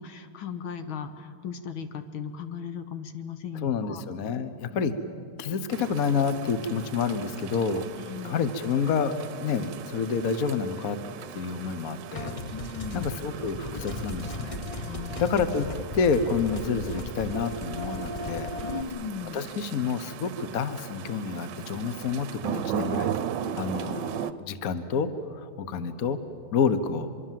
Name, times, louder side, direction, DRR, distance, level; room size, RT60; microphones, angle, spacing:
voice 1, 0.0-4.0 4.7-4.8 8.0-8.5 12.5-13.1 14.9-15.3 18.6-19.4, left 6 dB, 75° left, 9 dB, 2.0 m, -37 dB
voice 2, 3.6-4.9 5.4-11.0 11.3-12.3 12.9-14.6 15.2-18.5 19.3-23.1 23.5-26.2 26.5-27.1, left 5 dB, 50° left, 11 dB, 1.4 m, -28 dB
sound 1, 5.7-24.3, right 9 dB, 65° right, 1.3 m, -38 dB
sound 2, 12.2-18.8, left 1 dB, 25° left, 0.8 m, -36 dB
25.0 x 24.0 x 7.6 m, 2.5 s
omnidirectional pair, 2.3 m